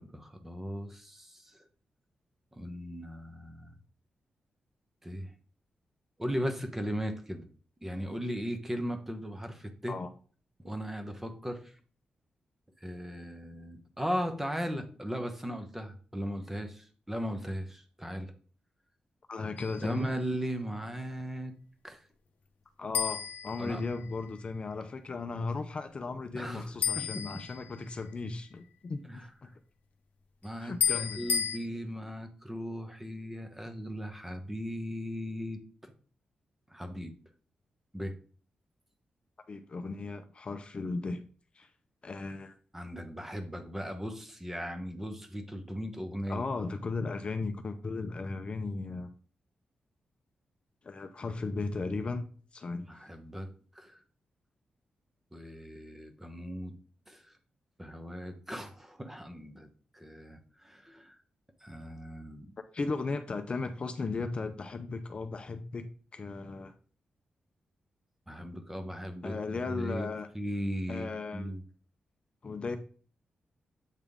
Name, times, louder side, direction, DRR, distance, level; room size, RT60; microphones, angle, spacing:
voice 1, 0.0-1.6 2.5-3.7 5.0-5.4 6.2-7.5 7.8-10.0 10.6-11.8 12.8-18.3 19.8-21.5 21.8-22.0 23.6-23.8 26.3-27.4 29.0-29.3 30.4-35.9 36.7-37.1 37.9-38.2 42.7-46.5 52.7-54.0 55.3-56.8 57.1-57.3 57.8-59.7 59.9-61.2 61.6-62.5 68.3-70.1 70.3-71.6, equal, 10° right, 6 dB, 1.0 m, -37 dB
voice 2, 19.3-20.1 22.8-29.5 30.6-31.4 39.5-41.2 41.6-41.7 42.0-42.6 46.3-49.1 50.8-52.2 52.5-52.9 62.6-65.9 66.1-66.7 69.2-70.3 70.9-71.5 72.4-72.8, left 3 dB, 40° left, 8 dB, 0.5 m, -36 dB
sound 1, 19.6-20.0 22.9-24.3 26.8-28.1 30.8-31.6, left 8 dB, 75° left, 0.8 m, -32 dB
8.2 x 3.6 x 3.6 m, 0.42 s
cardioid pair, 95°, 3 cm